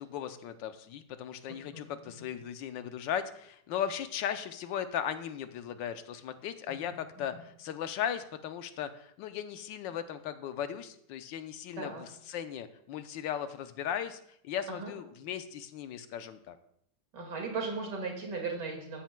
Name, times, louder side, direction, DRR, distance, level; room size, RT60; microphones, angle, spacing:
voice 1, 0.0-16.6, left 9 dB, 80° left, 10 dB, 1.3 m, -37 dB
voice 2, 1.7-2.3 6.7-7.4 11.8-12.0 14.7-14.9 17.1-19.0, right 4 dB, 65° right, 1 dB, 2.6 m, -38 dB
13.0 x 9.1 x 2.2 m, 0.72 s
omnidirectional pair, 2.0 m